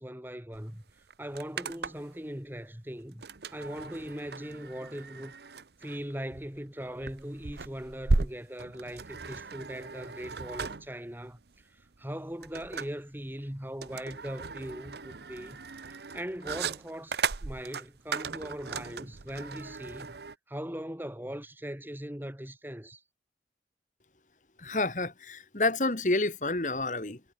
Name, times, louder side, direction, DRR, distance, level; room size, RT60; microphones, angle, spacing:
voice 1, 0.0-3.2 3.5-5.3 5.8-15.6 16.1-20.2 20.5-23.0, equal, 10° right, 1.5 m, -40 dB
sound 1, 0.5-0.6 0.9-2.2 3.2-20.3, right 3 dB, 70° right, 0.9 m, -36 dB
voice 2, 24.6-27.2, left 2 dB, 45° left, 1.8 m, -29 dB
head